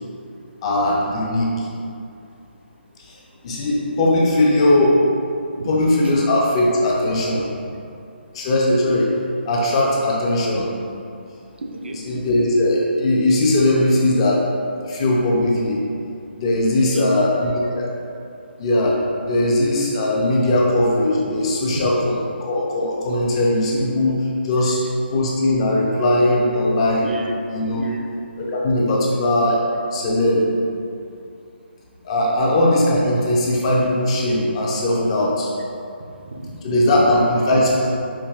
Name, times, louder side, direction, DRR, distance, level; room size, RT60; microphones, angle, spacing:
voice 1, 0.6-1.7 3.0-5.0 5.7-7.4 8.3-9.1 9.5-10.7 12.1-14.4 14.9-15.8 16.4-17.9 18.6-22.2 22.5-24.8 25.1-27.1 27.5-27.8 28.4-29.6 29.9-30.5 32.0-35.5 36.6-38.0, left 1 dB, 30° left, -3 dB, 0.5 m, -19 dB
voice 2, 11.6-12.3 16.8-17.1 17.4-17.5 20.4-20.5 21.1-21.2 21.7-21.8 24.6-24.9 27.0-27.4 27.8-28.1 36.2-37.0, right 2 dB, 70° right, 1 dB, 0.4 m, -32 dB
4.5 x 2.6 x 2.4 m, 2.5 s
hypercardioid pair, 155°, 6 cm